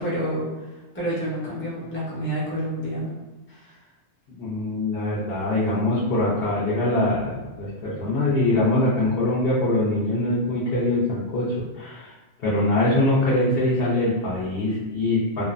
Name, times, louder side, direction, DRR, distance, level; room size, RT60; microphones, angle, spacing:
voice 1, 0.0-3.1 3.5-3.8, right 1 dB, 15° left, -8 dB, 0.4 m, -29 dB
voice 2, 4.3-12.1 12.4-15.4, left 1 dB, 70° left, -8 dB, 0.5 m, -23 dB
2.6 x 2.0 x 2.4 m, 1.1 s
omnidirectional pair, 1.6 m